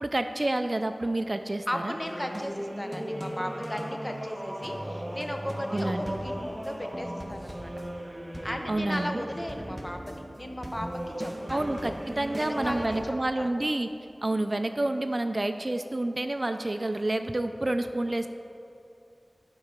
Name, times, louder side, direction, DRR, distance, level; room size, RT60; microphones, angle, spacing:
voice 1, 0.0-1.9 5.7-6.2 8.7-9.2 11.5-13.9 14.2-18.3, right 1 dB, 45° right, 8 dB, 0.3 m, -29 dB
voice 2, 1.7-7.8 8.4-11.7 12.4-13.5, equal, 25° left, 4 dB, 0.7 m, -36 dB
sound 1, 2.0-13.0, equal, 15° right, 1.1 m, -37 dB
11.0 x 4.5 x 5.0 m, 2.8 s
wide cardioid pair, 50°, 0 cm